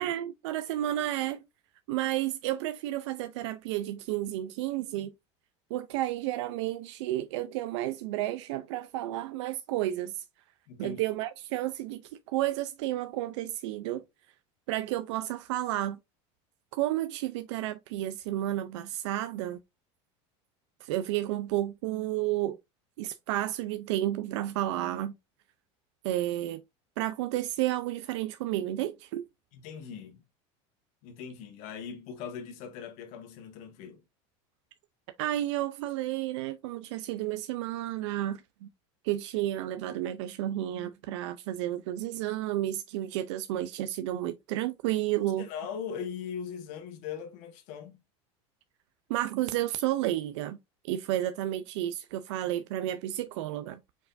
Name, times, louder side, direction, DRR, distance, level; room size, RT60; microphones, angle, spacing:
voice 1, 0.0-1.4 1.9-5.1 5.7-10.3 10.8-14.0 14.7-16.0 16.7-19.6 20.8-22.6 23.0-25.1 26.0-26.6 27.0-29.2 35.2-38.7 39.0-45.5 49.1-50.6 50.8-53.8, right 14 dB, 80° right, 0.5 m, -31 dB
voice 2, 10.7-11.0 29.5-30.2 31.0-34.0 45.4-48.0, left 7 dB, 55° left, 1.4 m, -40 dB
4.8 x 4.4 x 2.5 m
supercardioid pair, 145°, 15 cm